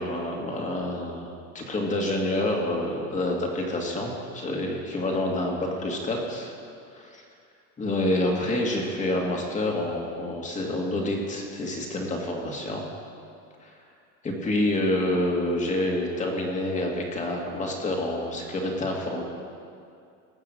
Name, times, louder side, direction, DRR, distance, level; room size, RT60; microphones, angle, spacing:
voice 1, 0.0-6.5 6.9-7.2 7.8-12.8 13.6-13.7 14.2-19.2, left 1 dB, 20° left, 0 dB, 2.4 m, -28 dB
18.5 x 6.7 x 7.9 m, 2.4 s
supercardioid pair, 140°, 37 cm